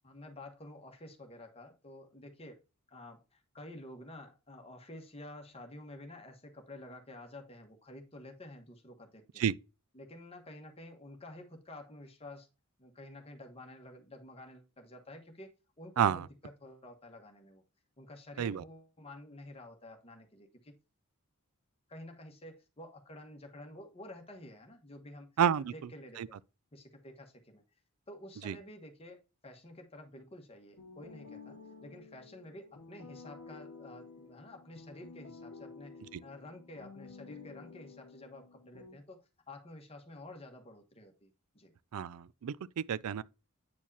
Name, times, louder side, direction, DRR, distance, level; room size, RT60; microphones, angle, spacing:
voice 1, 0.0-2.6 2.9-9.4 9.9-12.5 12.8-15.5 15.8-17.6 18.0-20.7 21.9-25.3 25.6-26.4 26.7-27.6 28.1-41.7, left 1 dB, 25° left, 1.3 m, -50 dB
voice 2, 25.4-25.7 26.2-26.3 28.4-28.6 41.9-43.2, right 8 dB, 80° right, 0.4 m, -30 dB
sound 1, 30.8-38.9, left 4 dB, 80° left, 0.9 m, -52 dB
8.6 x 4.6 x 2.7 m
head